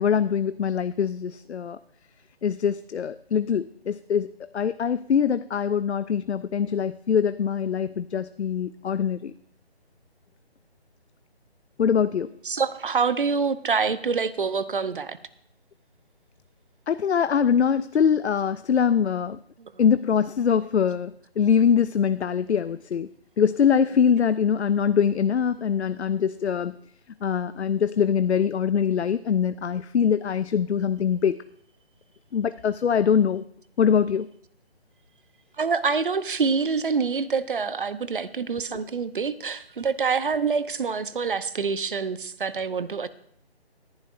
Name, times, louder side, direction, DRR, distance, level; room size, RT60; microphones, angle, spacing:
voice 1, 0.0-1.8 2.4-9.3 11.8-12.3 16.9-19.4 19.8-23.1 23.4-26.7 27.2-31.4 32.3-33.4 33.8-34.3, left 7 dB, 85° left, 14 dB, 0.5 m, -23 dB
voice 2, 12.4-15.2 19.6-19.7 35.6-43.1, right 5 dB, 55° right, 14 dB, 0.8 m, -26 dB
18.5 x 11.0 x 2.5 m, 0.66 s
figure-of-eight pair, 160°, 32 cm